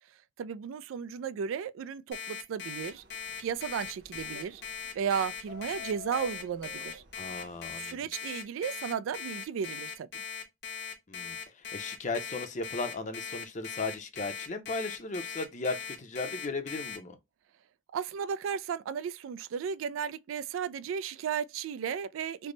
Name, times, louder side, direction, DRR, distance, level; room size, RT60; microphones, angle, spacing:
voice 1, 0.4-3.0 3.4-4.6 4.9-7.0 7.8-10.2 17.9-22.5, right 7 dB, 85° right, 0.3 m, -34 dB
Alarm, 2.1-17.0, left 7 dB, 60° left, 0.9 m, -39 dB
sound 1, 2.8-7.7, left 3 dB, 55° right, 0.9 m, -50 dB
voice 2, 7.2-8.0 11.1-17.2, left 3 dB, 40° left, 0.7 m, -36 dB
3.3 x 2.1 x 3.8 m
head